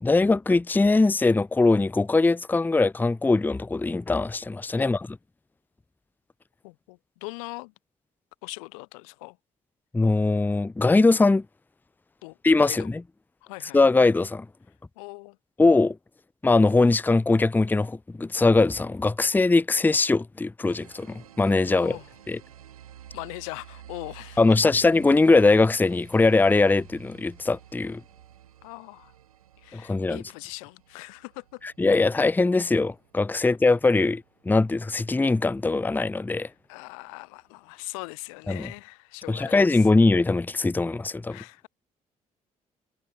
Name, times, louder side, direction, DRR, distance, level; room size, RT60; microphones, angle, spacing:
voice 1, 0.0-5.1 9.9-11.4 12.4-13.0 13.7-14.5 15.6-16.0 16.4-22.0 22.3-22.4 24.4-28.0 29.7-30.2 31.8-36.5 38.5-38.7 39.3-41.4, left 3 dB, 10° left, 0.6 m, -21 dB
voice 2, 6.6-7.7 8.4-9.4 12.2-12.4 12.6-12.9 13.4-13.8 15.0-15.4 21.7-22.0 23.1-24.7 28.6-29.1 29.6-31.6 33.4-33.5 36.7-39.9 41.3-41.7, left 31 dB, 70° left, 0.5 m, -40 dB
sound 1, 20.7-36.1, right 11 dB, 80° right, 2.2 m, -52 dB
figure-of-eight pair, 45°, 18 cm